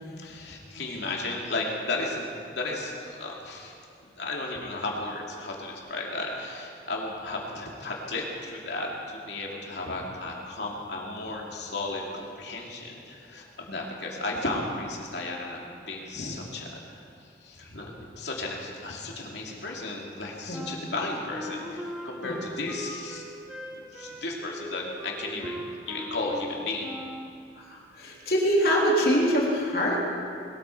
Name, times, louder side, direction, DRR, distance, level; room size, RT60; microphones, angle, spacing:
voice 1, 0.2-3.8 4.0-23.3 23.7-26.9, left 2 dB, 80° left, -2 dB, 2.6 m, -34 dB
Wind instrument woodwind instrument, 20.5-27.3, equal, 5° right, 1.3 m, -39 dB
voice 2, 27.5-30.0, equal, 55° left, -4 dB, 3.3 m, -25 dB
21.0 x 13.5 x 4.6 m, 2.4 s
head